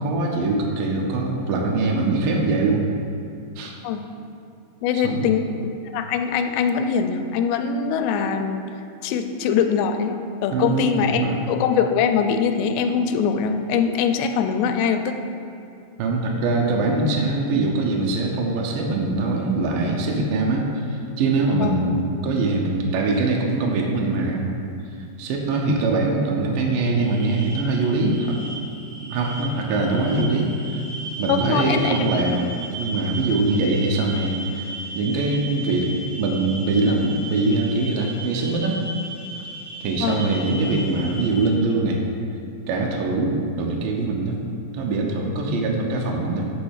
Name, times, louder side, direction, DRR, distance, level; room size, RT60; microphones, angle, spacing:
voice 1, 0.0-2.8 3.6-3.7 4.9-5.3 10.5-11.4 16.0-24.5 25.2-28.4 29.0-30.8 31.2-38.8 39.8-42.0 42.7-44.4 44.7-46.4, right 3 dB, 85° right, -1 dB, 1.9 m, -23 dB
voice 2, 4.8-8.6 9.0-15.1 21.6-21.7 31.3-32.1 40.0-40.3, left 6 dB, 85° left, 6 dB, 2.7 m, -23 dB
sound 1, 26.9-41.5, right 2 dB, 60° right, 2.8 m, -36 dB
8.1 x 3.2 x 6.3 m, 2.6 s
omnidirectional pair, 4.8 m